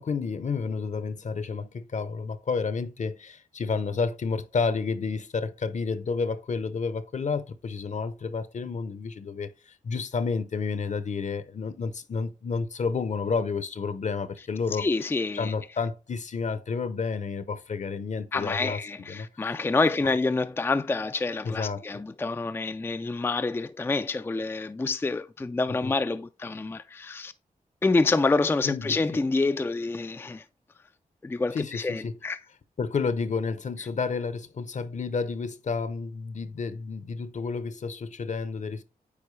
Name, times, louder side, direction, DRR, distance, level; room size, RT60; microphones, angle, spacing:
voice 1, 0.0-14.9 15.3-18.8 19.1-19.6 20.0-20.1 21.4-22.0 25.7-26.0 28.6-29.2 31.5-32.2 32.8-38.8, left 5 dB, 55° left, 0.8 m, -30 dB
voice 2, 14.8-15.5 18.3-27.3 27.8-30.4 31.2-32.4, left 3 dB, 15° left, 0.3 m, -27 dB
8.6 x 4.5 x 3.2 m
cardioid pair, 85°, 15 cm